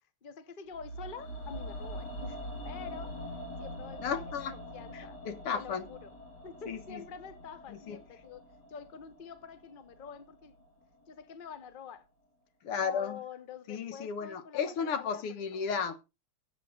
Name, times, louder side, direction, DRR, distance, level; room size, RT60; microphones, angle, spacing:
voice 1, 0.2-2.4 2.6-3.2 3.6-4.2 4.7-5.2 5.5-6.1 6.4-8.4 8.7-10.6 11.1-12.1 12.8-15.2 15.5-15.7, left 6 dB, 35° left, 0.9 m, -47 dB
sound 1, 0.7-10.8 11.1-11.2, equal, 50° left, 3.3 m, -44 dB
voice 2, 4.0-4.6 4.9-5.9 6.7-7.0 7.7-8.0 12.6-13.2 13.7-16.0, left 6 dB, 85° left, 2.2 m, -34 dB
13.5 x 8.4 x 3.9 m
omnidirectional pair, 2.4 m